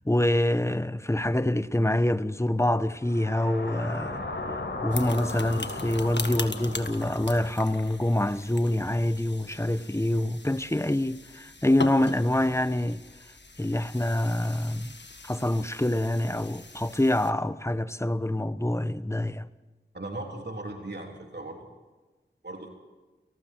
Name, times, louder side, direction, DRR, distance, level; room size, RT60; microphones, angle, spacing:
voice 1, 0.1-4.2 4.8-13.0 13.6-14.9 15.3-19.5, left 1 dB, 15° left, 1.1 m, -26 dB
sound 1, 3.0-7.5, left 2 dB, 80° left, 6.3 m, -36 dB
sound 2, 4.9-17.3, left 3 dB, 65° left, 1.7 m, -41 dB
voice 2, 19.9-21.7 22.4-22.7, right 2 dB, 60° right, 3.5 m, -37 dB
29.5 x 19.0 x 4.6 m
wide cardioid pair, 40°, 20 cm